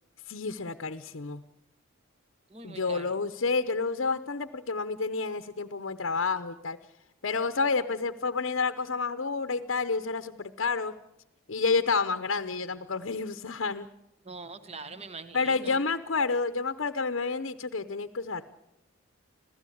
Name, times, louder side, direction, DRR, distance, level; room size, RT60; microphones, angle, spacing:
voice 1, 0.3-1.4 2.6-6.8 7.2-10.9 11.5-13.9 15.3-18.4, left 4 dB, 60° left, 9 dB, 0.8 m, -29 dB
voice 2, 2.5-3.2 14.2-15.8, right 4 dB, 30° right, 11 dB, 1.2 m, -43 dB
26.5 x 16.0 x 8.5 m, 0.90 s
head